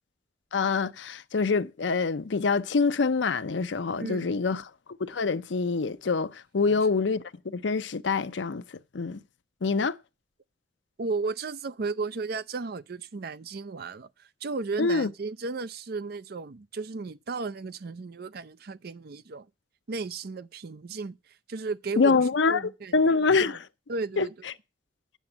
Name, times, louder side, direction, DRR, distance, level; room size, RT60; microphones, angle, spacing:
voice 1, 0.5-4.6 5.0-8.6 8.9-9.2 9.6-10.0 14.8-15.1 22.0-22.6 22.9-23.6 24.2-24.3, left 4 dB, 80° left, 0.6 m, -25 dB
voice 2, 4.0-4.6 6.7-6.8 11.0-19.5 19.9-21.2 21.5-22.2 22.5-23.6 23.9-24.3, right 4 dB, 55° right, 0.5 m, -34 dB
9.2 x 7.0 x 7.2 m
head